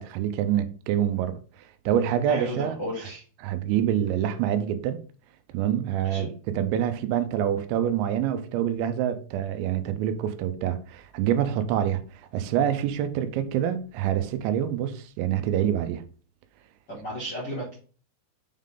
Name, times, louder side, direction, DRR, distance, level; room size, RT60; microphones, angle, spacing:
voice 1, 0.0-1.4 1.9-2.8 3.4-5.0 5.5-12.0 12.3-16.0, right 10 dB, 85° right, 2.9 m, -26 dB
voice 2, 2.3-3.2 6.0-6.3 16.9-17.8, equal, 45° left, 1.4 m, -34 dB
7.3 x 3.8 x 3.6 m
omnidirectional pair, 5.2 m